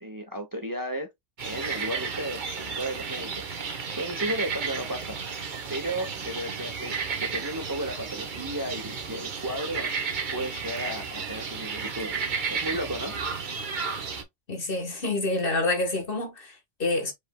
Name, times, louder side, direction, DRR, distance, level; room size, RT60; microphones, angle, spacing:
voice 1, 0.0-1.1 1.4-3.4 3.9-5.2 5.7-9.9 10.3-12.2 12.5-13.1, right 1 dB, 20° right, 0.8 m, -34 dB
sound 1, 1.4-14.2, right 5 dB, 45° right, 1.0 m, -33 dB
voice 2, 14.5-17.1, left 2 dB, 50° left, 1.6 m, -28 dB
5.2 x 3.3 x 2.2 m
omnidirectional pair, 1.2 m